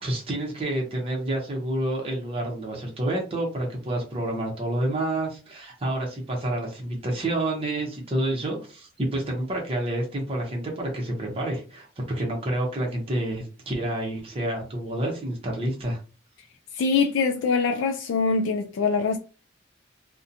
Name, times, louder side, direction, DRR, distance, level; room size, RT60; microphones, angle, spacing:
voice 1, 0.0-16.0, right 1 dB, 30° right, 0.7 m, -29 dB
voice 2, 16.7-19.2, left 4 dB, 70° left, 0.3 m, -23 dB
2.7 x 2.1 x 2.5 m
head